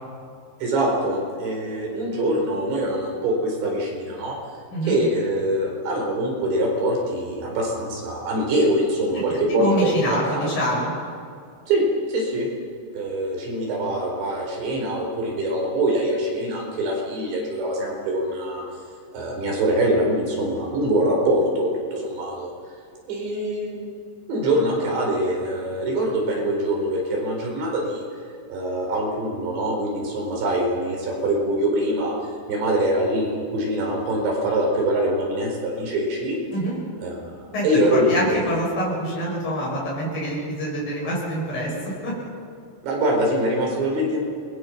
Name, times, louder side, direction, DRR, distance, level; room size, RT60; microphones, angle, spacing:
voice 1, 0.6-4.4 4.9-10.5 11.7-11.8 12.1-12.5 12.9-18.6 19.1-22.5 23.1-23.9 24.3-28.0 28.5-32.1 32.5-36.4 37.0-37.2 37.6-38.5 42.8-44.2, right 1 dB, 70° right, -1 dB, 6.7 m, -24 dB
voice 2, 9.5-10.9 36.5-36.8 37.5-42.1, equal, 50° left, -4 dB, 8.9 m, -26 dB
27.5 x 21.5 x 6.0 m, 2.2 s
omnidirectional pair, 5.3 m